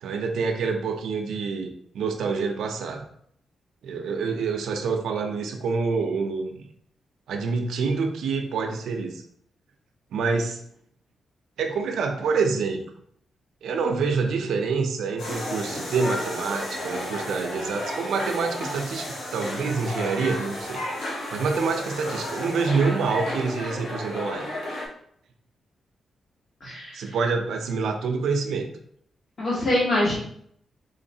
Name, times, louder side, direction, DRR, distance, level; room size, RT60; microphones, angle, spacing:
voice 1, 0.0-3.0 3.8-6.6 7.3-9.2 10.1-10.6 11.6-12.8 13.6-20.8 21.3-24.5 26.9-28.7, right 4 dB, 85° right, 3 dB, 0.5 m, -27 dB
sound 1, 15.2-24.9, left 1 dB, 75° left, 1.2 m, -32 dB
voice 2, 26.6-27.1 29.4-30.2, left 1 dB, 35° left, -5 dB, 1.2 m, -24 dB
3.8 x 3.1 x 2.7 m, 0.67 s
wide cardioid pair, 165°, 0 cm